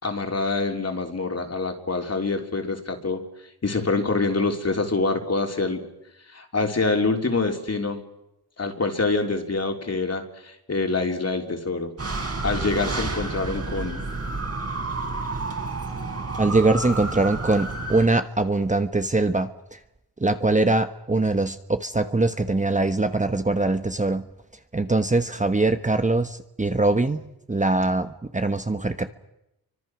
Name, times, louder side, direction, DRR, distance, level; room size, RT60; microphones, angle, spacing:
voice 1, 0.0-3.2 3.6-5.8 6.3-8.0 8.6-11.9 12.4-14.0, left 3 dB, 40° left, 4 dB, 3.7 m, -25 dB
sound 1, 12.0-18.1, right 3 dB, 40° right, 3.8 m, -30 dB
voice 2, 16.4-19.8 20.2-24.3 24.7-29.1, right 2 dB, 20° right, 8 dB, 1.2 m, -22 dB
29.5 x 25.0 x 6.2 m, 0.88 s
cardioid pair, 75°, 38 cm